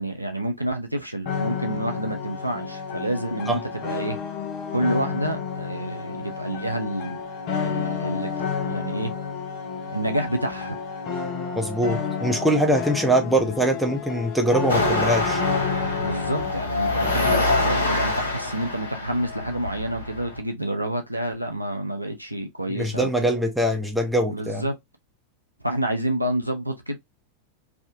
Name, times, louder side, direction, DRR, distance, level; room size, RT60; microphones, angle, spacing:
voice 1, 0.0-4.2 4.7-7.2 7.6-8.3 8.6-9.1 9.9-10.8 16.0-23.1 24.3-24.7 25.6-27.0, right 1 dB, 90° right, 0.6 m, -28 dB
sound 1, 1.3-16.7, left 6 dB, 40° left, 0.9 m, -30 dB
voice 2, 11.6-15.4 22.7-24.6, right 1 dB, 5° right, 1.0 m, -23 dB
sound 2, 14.7-20.4, left 2 dB, 75° left, 1.0 m, -25 dB
3.4 x 2.6 x 2.6 m
figure-of-eight pair, 90°, 0 cm